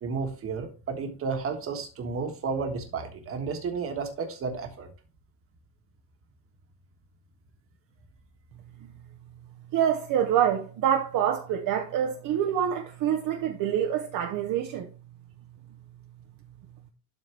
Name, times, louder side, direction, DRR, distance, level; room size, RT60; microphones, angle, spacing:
voice 1, 0.0-4.9, right 5 dB, 35° right, 1.5 m, -32 dB
voice 2, 9.7-14.9, right 9 dB, 50° right, 0.9 m, -26 dB
12.0 x 4.5 x 3.3 m
cardioid pair, 175°, 41 cm